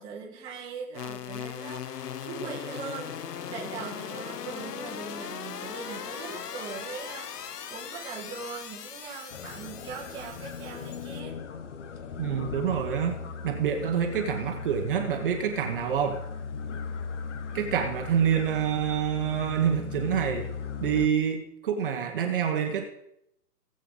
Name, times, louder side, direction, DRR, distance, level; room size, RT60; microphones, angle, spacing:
voice 1, 0.0-11.4, right 5 dB, 10° right, -3 dB, 1.1 m, -41 dB
sound 1, 0.9-11.2, left 8 dB, 75° left, 0.9 m, -39 dB
sound 2, 9.3-21.1, left 6 dB, 45° left, 1.0 m, -38 dB
voice 2, 12.2-13.2 13.4-16.2 17.5-20.5 20.8-22.9, right 8 dB, 35° right, 4 dB, 1.1 m, -27 dB
17.5 x 7.8 x 3.8 m, 0.76 s
hypercardioid pair, 155°, 48 cm